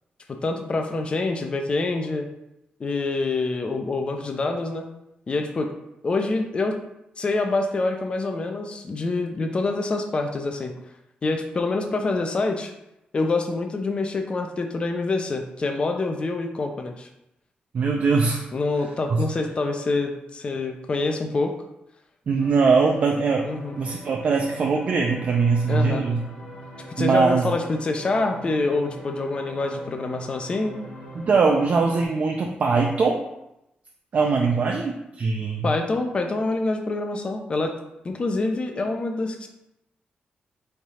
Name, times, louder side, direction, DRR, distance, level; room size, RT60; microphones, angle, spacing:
voice 1, 0.3-2.3 2.8-4.9 5.3-5.7 6.0-6.8 7.2-10.7 11.2-12.7 13.1-17.1 18.5-21.5 23.4-23.7 25.7-26.0 27.0-30.8 35.6-37.7 38.0-39.5, left 3 dB, 30° left, 4 dB, 0.4 m, -26 dB
voice 2, 17.7-18.5 19.1-19.3 22.3-23.5 23.8-26.2 27.0-27.5 31.1-33.2 34.1-35.7, right 4 dB, 45° right, 1 dB, 0.4 m, -21 dB
sound 1, 22.4-32.1, equal, 75° left, 1.2 m, -42 dB
3.5 x 3.3 x 4.2 m, 0.87 s
wide cardioid pair, 155°, 3 cm